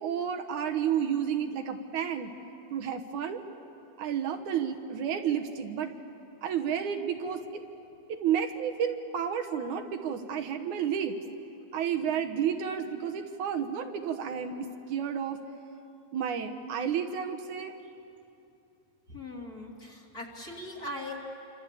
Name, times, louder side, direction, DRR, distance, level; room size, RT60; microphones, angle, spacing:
voice 1, 0.0-2.3 2.7-3.4 4.0-6.0 6.4-7.6 8.1-11.2 11.7-15.4 16.1-17.7, right 8 dB, 75° right, 5 dB, 2.5 m, -31 dB
voice 2, 19.1-21.2, left 1 dB, 30° left, -1 dB, 3.2 m, -40 dB
27.0 x 25.5 x 8.5 m, 2.8 s
omnidirectional pair, 3.5 m